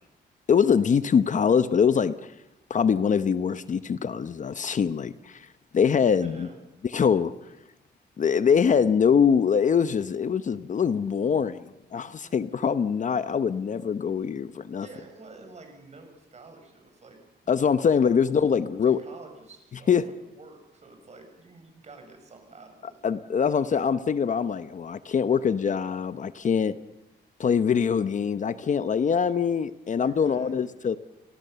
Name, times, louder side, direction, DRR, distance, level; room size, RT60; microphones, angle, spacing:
voice 1, 0.5-2.3 2.7-5.5 5.7-6.5 6.9-7.3 8.2-14.9 17.5-19.0 19.9-20.1 23.0-26.8 27.4-31.0, left 7 dB, 45° left, 13 dB, 0.9 m, -23 dB
voice 2, 6.2-6.6 12.2-12.4 14.8-17.6 17.9-18.1 18.6-23.0 30.0-30.7, right 3 dB, 40° right, 5 dB, 7.3 m, -49 dB
29.5 x 18.5 x 7.0 m, 0.94 s
cardioid pair, 115°, 18 cm